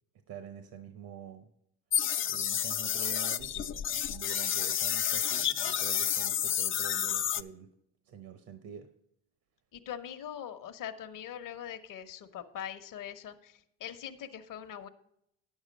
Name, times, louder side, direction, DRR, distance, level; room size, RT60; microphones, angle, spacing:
voice 1, 0.3-1.5 2.3-7.7 8.0-8.9, right 7 dB, 60° right, 8 dB, 1.0 m, -46 dB
sound 1, 1.9-7.4, left 9 dB, 35° left, 0.4 m, -30 dB
voice 2, 9.7-14.9, left 9 dB, 55° left, 6 dB, 1.0 m, -42 dB
9.7 x 7.3 x 5.2 m, 0.75 s
supercardioid pair, 80°, 39 cm